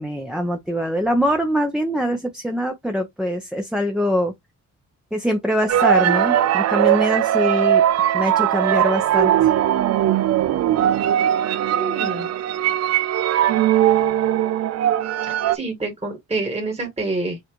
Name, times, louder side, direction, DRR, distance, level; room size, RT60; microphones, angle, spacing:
voice 1, 0.0-4.3 5.1-7.8 8.1-9.5, equal, ahead, 0.8 m, -23 dB
sound 1, 5.7-15.6, right 11 dB, 55° right, 0.5 m, -19 dB
voice 2, 11.6-12.3 15.2-17.4, right 2 dB, 20° right, 1.7 m, -27 dB
5.8 x 2.5 x 3.1 m
cardioid pair, 85°, 31 cm